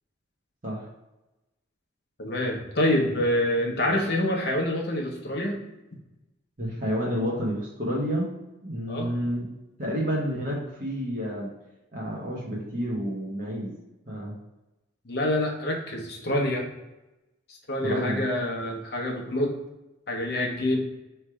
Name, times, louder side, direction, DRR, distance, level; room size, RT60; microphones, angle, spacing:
voice 1, 2.2-5.6 8.9-9.1 15.1-16.6 17.5-19.6 20.1-20.8, left 1 dB, 55° left, 1 dB, 0.9 m, -26 dB
voice 2, 6.6-8.3 8.6-9.4 9.8-11.5 11.9-13.7 14.1-14.3 17.8-18.2, equal, 45° right, -5 dB, 1.0 m, -29 dB
3.3 x 3.1 x 4.7 m, 0.99 s
head